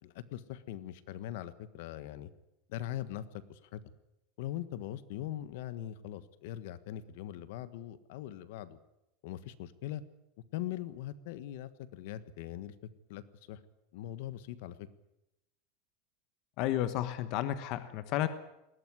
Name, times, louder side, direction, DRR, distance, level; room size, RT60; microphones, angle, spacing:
voice 1, 0.0-2.3 2.7-3.8 4.4-8.8 9.2-10.0 10.5-12.7 13.1-13.2 13.5-13.6 13.9-14.9, left 12 dB, 60° left, 15 dB, 1.4 m, -41 dB
voice 2, 16.6-18.3, left 13 dB, 40° left, 11 dB, 1.2 m, -32 dB
20.5 x 17.5 x 9.8 m, 0.89 s
supercardioid pair, 180°, 0 cm